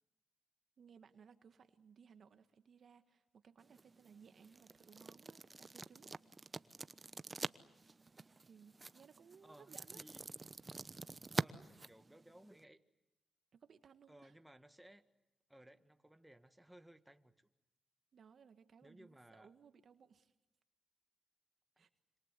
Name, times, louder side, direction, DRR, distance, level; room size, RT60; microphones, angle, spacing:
voice 1, 0.8-6.1 6.4-6.5 8.4-10.1 13.5-14.4 18.1-20.3 21.8-21.9, right 6 dB, 65° right, 9 dB, 1.6 m, -63 dB
sound 1, 3.6-12.6, right 3 dB, 35° right, 0.9 m, -46 dB
voice 2, 9.4-10.3 11.3-12.8 14.1-15.1 15.5-17.5 18.8-19.5 21.8-21.9, right 1 dB, 10° right, 8 dB, 1.8 m, -61 dB
27.0 x 26.0 x 8.2 m, 0.97 s
supercardioid pair, 55°, 0 cm